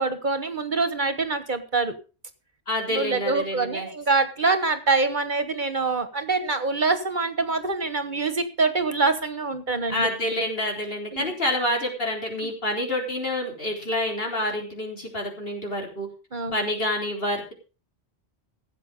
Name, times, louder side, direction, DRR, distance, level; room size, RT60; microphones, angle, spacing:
voice 1, 0.0-1.9 2.9-10.1 11.1-11.3 12.4-12.5 16.3-16.6, right 3 dB, 45° right, 10 dB, 1.4 m, -25 dB
voice 2, 2.7-3.9 9.9-16.1 16.5-17.5, left 1 dB, 60° left, 0 dB, 4.1 m, -28 dB
15.5 x 8.1 x 5.2 m, 0.34 s
omnidirectional pair, 1.1 m